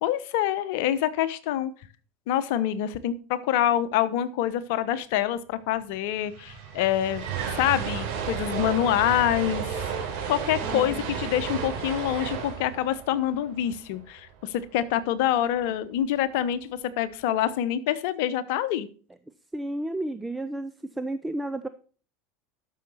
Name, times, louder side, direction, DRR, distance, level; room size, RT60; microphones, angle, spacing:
voice 1, 0.0-1.7 2.3-7.2 7.5-9.8 10.3-18.9, left 11 dB, 65° left, 14 dB, 0.9 m, -26 dB
sound 1, 5.8-5.9 6.1-14.3, right 7 dB, 60° right, 3.7 m, -33 dB
voice 2, 10.6-11.0 19.5-21.7, right 1 dB, 10° right, 10 dB, 0.7 m, -32 dB
12.0 x 6.6 x 4.1 m, 0.39 s
hypercardioid pair, 80°, 0 cm